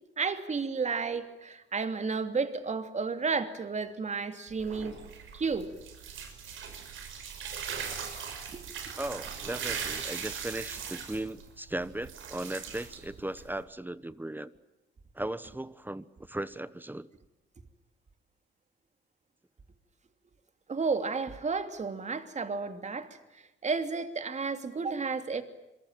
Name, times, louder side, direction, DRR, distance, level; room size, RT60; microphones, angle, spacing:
voice 1, 0.2-5.0 5.3-5.7 8.5-8.6 20.7-23.1 23.6-25.4, right 4 dB, 35° right, 9 dB, 2.9 m, -32 dB
sound 1, 4.5-13.6, right 7 dB, 80° right, 6.1 m, -40 dB
voice 2, 9.0-14.5 15.1-17.1, right 1 dB, 10° right, 16 dB, 1.1 m, -37 dB
26.5 x 23.0 x 9.1 m, 0.97 s
cardioid pair, 90°, 20 cm